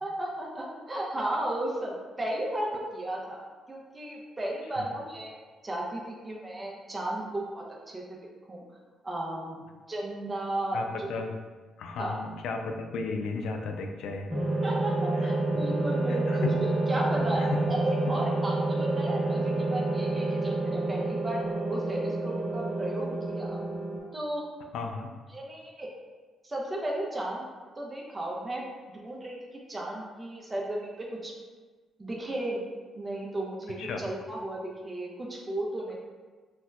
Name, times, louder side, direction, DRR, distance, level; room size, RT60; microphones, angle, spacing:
voice 1, 0.0-3.4 3.7-8.0 8.5-8.6 9.0-9.6 9.9-11.1 12.0-12.1 14.6-21.4 21.7-23.6 24.1-24.4 25.3-25.9 26.4-27.4 27.8-28.6 29.0-29.4 29.7-31.3 32.0-32.6 32.9-35.9, right 1 dB, 20° right, -3 dB, 0.6 m, -34 dB
voice 2, 10.7-11.3 11.8-14.3 15.2-15.3 16.1-16.6 17.3-17.7 18.0-18.2 24.7-25.1 33.8-34.0, left 4 dB, 75° left, 4 dB, 0.4 m, -34 dB
sound 1, 14.3-24.0, right 2 dB, 50° right, 1.1 m, -28 dB
4.1 x 2.1 x 2.3 m, 1.3 s
cardioid pair, 90°, 0 cm